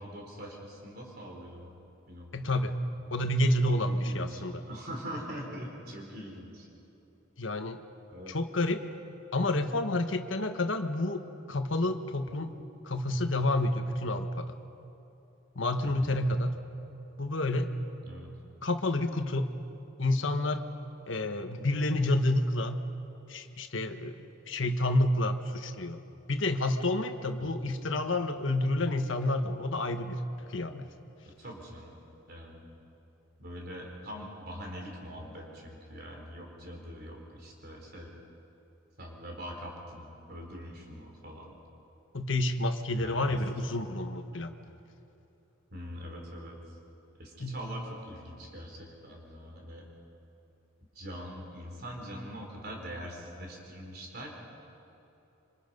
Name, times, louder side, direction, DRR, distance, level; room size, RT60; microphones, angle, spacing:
voice 1, 0.0-1.7 2.1-2.7 4.0-6.7 8.1-8.4 15.8-16.2 18.0-18.3 27.4-27.6 31.4-32.0 32.3-32.7 33.4-38.1 39.0-41.6 43.0-43.4 45.7-46.5 47.2-49.9 51.0-54.3, equal, 50° right, 0 dB, 3.7 m, -43 dB
voice 2, 2.3-2.8 3.1-4.6 7.4-7.8 8.3-8.8 9.3-12.5 12.8-14.5 15.5-16.5 17.2-17.7 18.6-19.5 20.0-20.6 21.1-22.8 23.3-24.1 24.5-30.2 30.5-30.8 42.1-44.5 47.4-47.6, left 1 dB, 70° left, 7 dB, 1.4 m, -29 dB
27.0 x 25.5 x 5.4 m, 2.8 s
head